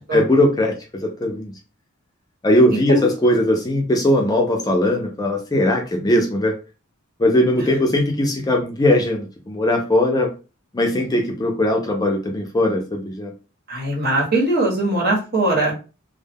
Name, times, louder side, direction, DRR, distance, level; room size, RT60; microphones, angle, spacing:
voice 1, 0.1-1.5 2.4-6.5 7.2-10.3 10.7-13.3, left 1 dB, 20° left, 2 dB, 0.4 m, -19 dB
voice 2, 13.7-15.7, right 2 dB, 50° right, -2 dB, 1.1 m, -20 dB
2.1 x 2.1 x 3.3 m, 0.33 s
head